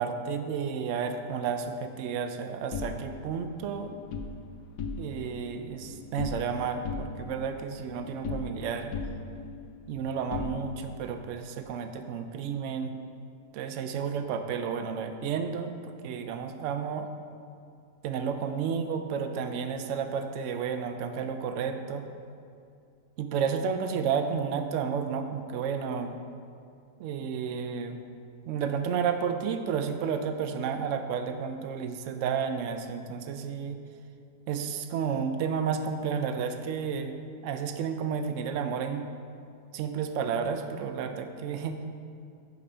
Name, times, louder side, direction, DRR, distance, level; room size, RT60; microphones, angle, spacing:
voice 1, 0.0-3.9 5.0-8.9 9.9-12.9 13.5-17.1 18.0-22.0 23.2-26.2 27.0-28.0 28.5-33.8 34.5-37.1 37.4-39.1 39.7-41.8, right 6 dB, 80° right, 7 dB, 0.6 m, -31 dB
sound 1, 2.7-4.3 4.7-5.3 5.6-6.5 6.8-8.6 8.9-11.0, left 4 dB, 75° left, 1.2 m, -37 dB
6.7 x 5.3 x 5.5 m, 2.4 s
omnidirectional pair, 1.8 m